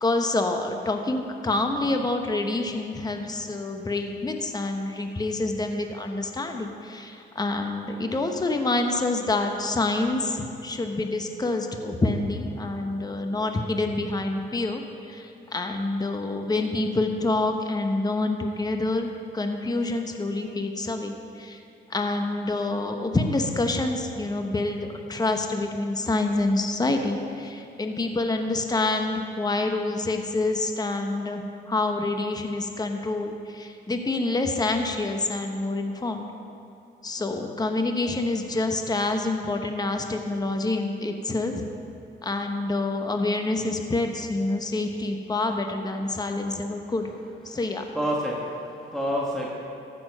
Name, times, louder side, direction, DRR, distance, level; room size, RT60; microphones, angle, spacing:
voice 1, 0.0-14.8 15.1-21.6 21.9-36.3 37.0-41.6 42.2-47.1 47.4-47.9, left 2 dB, 20° left, 4 dB, 1.0 m, -27 dB
voice 2, 46.1-46.5 46.8-46.9 47.5-47.6 47.9-49.5, equal, 5° left, -5 dB, 1.6 m, -30 dB
14.5 x 7.0 x 5.4 m, 2.6 s
cardioid pair, 90°, 20 cm